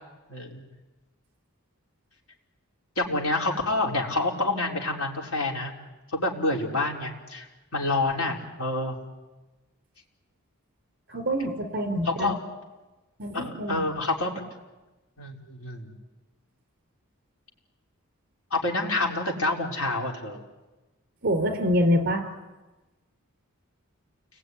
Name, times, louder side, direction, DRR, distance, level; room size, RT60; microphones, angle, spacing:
voice 1, 0.3-0.6 3.0-5.7 6.1-7.5 7.7-9.0 12.0-12.4 13.3-14.4 15.2-15.9 18.5-20.4, left 2 dB, 80° left, 0 dB, 4.7 m, -28 dB
voice 2, 11.1-12.3 13.2-13.8 21.2-22.3, equal, 45° right, 6 dB, 3.9 m, -25 dB
29.5 x 20.5 x 9.9 m, 1.1 s
head